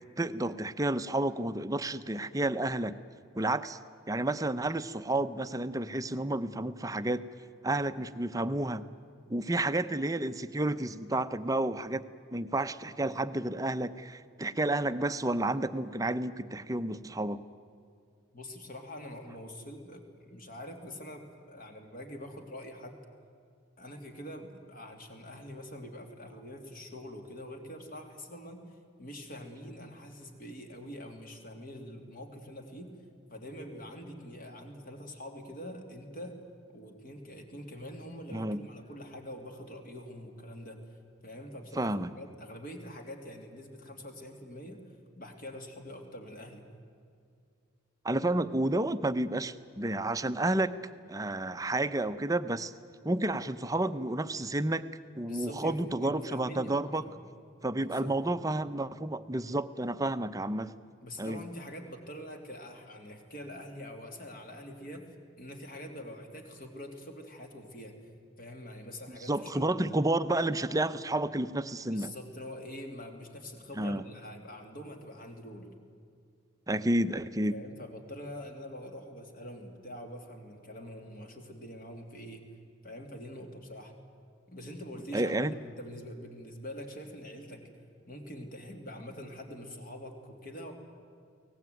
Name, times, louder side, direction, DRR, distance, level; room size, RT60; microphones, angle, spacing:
voice 1, 0.2-3.0 3.3-3.8 4.1-7.3 7.6-8.9 9.3-17.4 38.3-38.6 41.8-42.1 48.0-50.7 51.1-52.7 53.0-54.8 55.2-57.0 57.6-60.7 61.2-61.4 69.2-72.1 73.8-74.0 76.7-77.5 85.1-85.5, right 2 dB, 15° right, 11 dB, 0.7 m, -31 dB
voice 2, 18.3-23.0 23.8-32.9 33.3-36.4 36.7-40.8 41.2-44.8 45.2-46.7 55.3-57.1 57.7-58.1 61.0-68.1 68.4-69.8 71.8-75.7 77.5-82.5 82.8-83.9 84.5-87.7 88.1-90.7, equal, 45° left, 4 dB, 2.9 m, -45 dB
23.5 x 18.5 x 9.3 m, 2.3 s
head